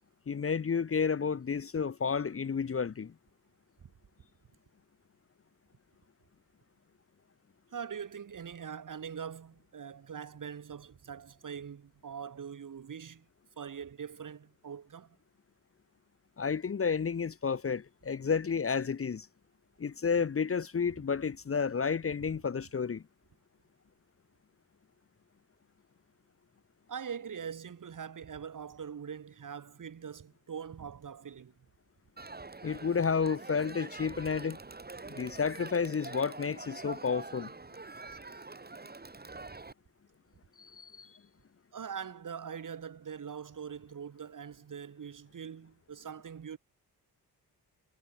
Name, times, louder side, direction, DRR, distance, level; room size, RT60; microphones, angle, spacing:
voice 1, 0.3-3.1 16.4-19.3 19.8-23.0 32.6-34.6 35.1-37.5 40.6-41.1, left 6 dB, 35° left, 0.8 m, -31 dB
voice 2, 7.7-13.3 13.6-15.2 22.3-22.4 26.9-31.5 41.7-46.6, right 7 dB, 55° right, 1.7 m, -43 dB
Crowd, 32.2-39.7, right 3 dB, 25° right, 2.7 m, -45 dB
cardioid pair, 85°, 39 cm